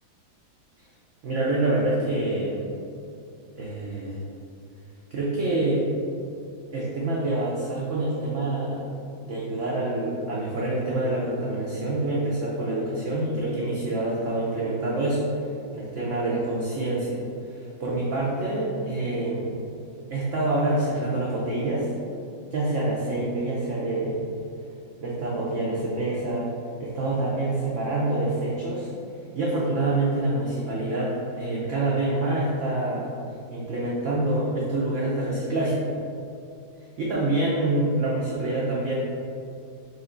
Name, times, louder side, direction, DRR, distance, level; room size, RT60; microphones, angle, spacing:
voice 1, 1.2-2.7 3.6-4.2 5.1-5.9 6.7-8.8 9.2-15.3 15.7-17.2 17.5-19.6 20.1-21.9 22.5-24.3 25.0-26.5 26.8-28.9 29.3-33.1 33.5-35.8 37.0-39.0, right 2 dB, 90° right, -6 dB, 0.6 m, -26 dB
4.5 x 2.8 x 3.8 m, 2.5 s
omnidirectional pair, 2.1 m